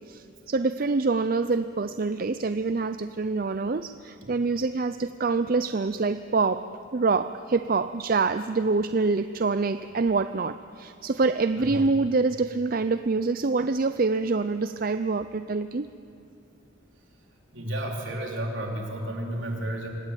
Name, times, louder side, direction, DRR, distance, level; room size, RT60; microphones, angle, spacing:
voice 1, 0.1-6.7 6.9-15.9, right 3 dB, 45° right, 11 dB, 0.5 m, -26 dB
voice 2, 17.5-19.9, right 1 dB, 70° right, 0 dB, 4.0 m, -32 dB
25.0 x 18.0 x 9.1 m, 2.5 s
head